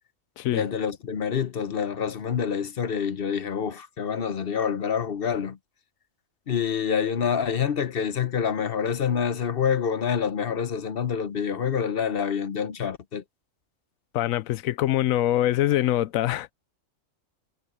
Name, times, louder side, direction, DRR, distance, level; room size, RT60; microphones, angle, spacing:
voice 1, 0.5-5.6 6.5-13.2, left 7 dB, 50° left, 0.9 m, -27 dB
voice 2, 14.1-16.5, left 14 dB, 85° left, 1.0 m, -24 dB
omnidirectional pair, 1.4 m